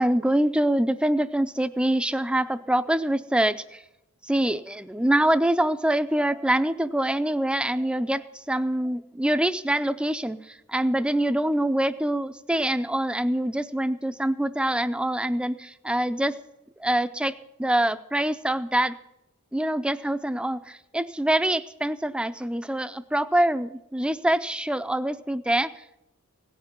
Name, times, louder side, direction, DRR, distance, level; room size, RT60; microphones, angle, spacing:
voice 1, 0.0-3.8 4.2-16.4 16.8-19.0 19.5-26.0, right 1 dB, 5° right, 11 dB, 0.4 m, -25 dB
17.5 x 5.9 x 9.3 m, 0.86 s
head